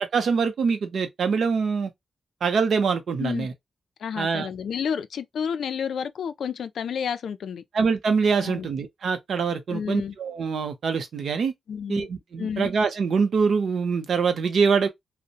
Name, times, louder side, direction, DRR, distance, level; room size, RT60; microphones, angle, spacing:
voice 1, 0.1-1.9 2.4-3.5 4.2-4.5 7.7-11.5 11.9-14.9, right 5 dB, 70° right, 0.6 m, -24 dB
voice 2, 4.0-7.6 8.4-8.7 9.7-10.2 11.7-12.1 12.4-12.7, left 7 dB, 80° left, 0.3 m, -30 dB
2.8 x 2.0 x 2.4 m
wide cardioid pair, 155°, 0 cm